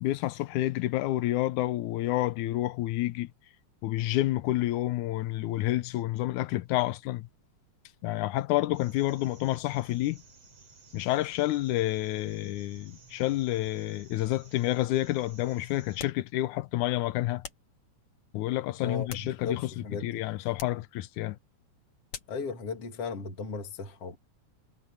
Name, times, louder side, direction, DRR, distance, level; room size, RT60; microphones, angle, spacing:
voice 1, 0.0-3.3 3.8-7.3 8.0-10.2 10.9-17.4 18.3-21.4, left 16 dB, 90° left, 2.2 m, -29 dB
sound 1, 8.7-16.0, right 3 dB, 55° right, 7.0 m, -55 dB
sound 2, 16.0-16.3 17.4-17.7 18.8-19.7 20.5-20.9 22.1-22.5, left 7 dB, 70° left, 3.3 m, -45 dB
voice 2, 18.8-20.1 22.3-24.2, left 4 dB, 55° left, 3.3 m, -36 dB
omnidirectional pair, 3.4 m